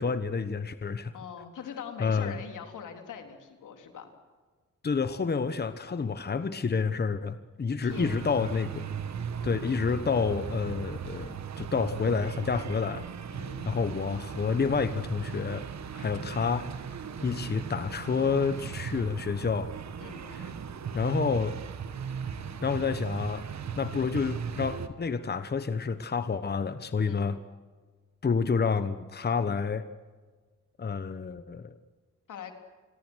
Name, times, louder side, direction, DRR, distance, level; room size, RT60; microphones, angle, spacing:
voice 1, 0.0-1.1 2.0-2.4 4.8-8.9 9.4-13.1 13.7-15.7 15.9-16.7 17.2-19.7 20.3-20.5 20.9-21.5 22.6-23.4 23.8-27.4 28.2-29.8 30.8-31.7, left 5 dB, 35° left, 12 dB, 1.2 m, -29 dB
voice 2, 1.1-4.1 7.8-8.3 13.3-13.7 16.1-16.3 17.2-17.4 20.0-20.6 27.1-27.3 32.3-32.6, left 7 dB, 85° left, 5 dB, 3.7 m, -43 dB
sound 1, 7.9-24.9, right 7 dB, 65° right, 1.7 m, -37 dB
29.0 x 22.0 x 6.4 m, 1.4 s
cardioid pair, 90°, 30 cm